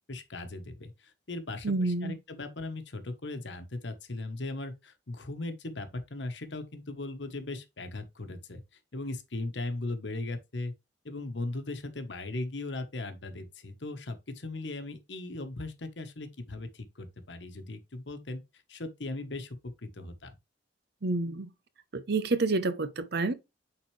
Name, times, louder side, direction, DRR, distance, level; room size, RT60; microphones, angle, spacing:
voice 1, 0.1-8.6 8.9-10.7 11.0-18.4 18.7-20.4, left 2 dB, 75° left, 1.2 m, -38 dB
voice 2, 1.6-2.2 21.0-21.5 21.9-23.3, right 3 dB, 60° right, 0.8 m, -28 dB
8.8 x 4.0 x 3.3 m
head